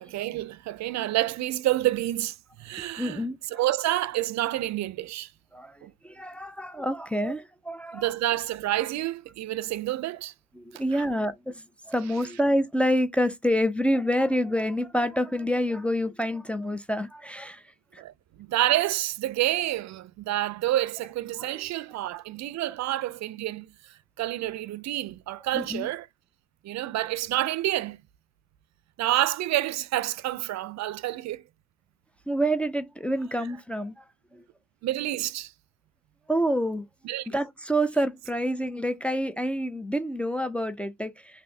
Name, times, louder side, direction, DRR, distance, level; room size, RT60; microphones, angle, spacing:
voice 1, 0.0-5.3 5.8-5.9 7.9-10.3 10.7-11.0 18.0-26.1 26.6-28.0 29.0-31.4 34.8-35.5 37.0-37.3, right 15 dB, 65° right, 0.4 m, -29 dB
voice 2, 3.0-3.4 5.5-8.1 10.6-17.6 17.9-18.0 21.4-21.6 25.5-25.9 32.3-34.0 34.3-34.4 36.3-36.8 37.3-41.4, equal, 5° left, 0.4 m, -27 dB
3.0 x 2.6 x 2.7 m
cardioid pair, 90°, 30 cm